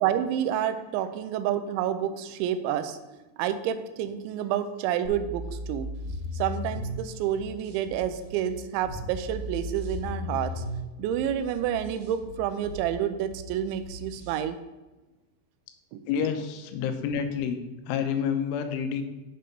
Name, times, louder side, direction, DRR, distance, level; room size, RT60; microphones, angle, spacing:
voice 1, 0.0-3.0 3.4-5.9 6.3-10.6 11.0-14.6 15.9-16.0, right 10 dB, 85° right, 10 dB, 2.9 m, -29 dB
sound 1, 5.0-7.0 8.8-10.8 12.7-12.8, left 2 dB, 65° left, 2.7 m, -35 dB
sound 2, 5.7-14.4, right 1 dB, 60° right, 3.4 m, -45 dB
voice 2, 16.1-17.6 17.9-19.0, left 7 dB, 90° left, 7 dB, 3.3 m, -28 dB
7.5 x 6.6 x 5.3 m, 1.1 s
omnidirectional pair, 5.4 m